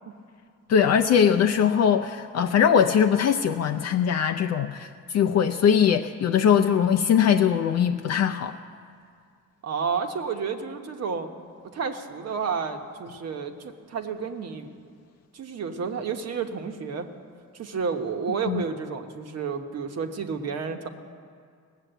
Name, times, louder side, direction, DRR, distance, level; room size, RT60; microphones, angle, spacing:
voice 1, 0.7-8.6 18.5-18.6, left 8 dB, 60° left, 5 dB, 0.6 m, -21 dB
voice 2, 9.6-11.3 11.7-14.7 15.3-17.1 17.5-20.9, right 5 dB, 55° right, 5 dB, 1.1 m, -31 dB
18.0 x 7.5 x 8.0 m, 2.2 s
cardioid pair, 90°, 30 cm